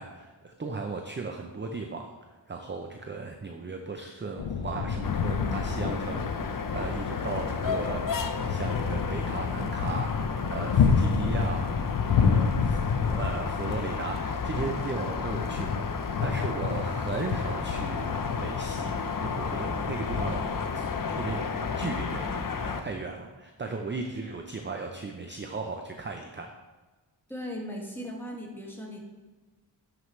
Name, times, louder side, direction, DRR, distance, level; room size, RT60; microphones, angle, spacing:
voice 1, 0.0-2.1 2.5-8.0 8.5-20.5 20.7-21.4 21.8-26.5, right 4 dB, 25° right, 4 dB, 0.6 m, -36 dB
sound 1, 4.4-22.3, left 6 dB, 80° left, 0.8 m, -30 dB
sound 2, 5.0-22.8, left 5 dB, 45° left, 0.7 m, -33 dB
voice 2, 27.3-29.0, equal, 5° left, -1 dB, 1.7 m, -37 dB
11.0 x 4.8 x 3.2 m, 1.3 s
wide cardioid pair, 60°, 45 cm